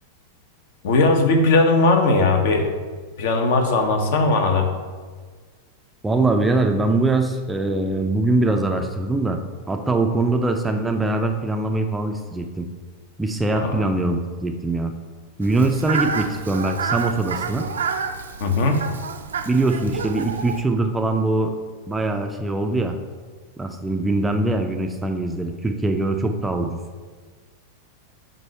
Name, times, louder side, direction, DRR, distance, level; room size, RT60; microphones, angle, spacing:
voice 1, 0.8-2.7 3.2-4.7 13.5-13.7 18.4-18.8, left 3 dB, 55° left, 5 dB, 0.9 m, -18 dB
voice 2, 6.0-9.4 9.7-12.7 13.2-14.9 15.4-17.7 19.5-21.5 21.9-23.0 23.6-26.8, right 2 dB, 10° right, 4 dB, 0.4 m, -22 dB
Fowl, 15.4-20.6, right 6 dB, 70° right, 0.4 m, -29 dB
7.5 x 2.6 x 5.4 m, 1.5 s
figure-of-eight pair, 90°, 0 cm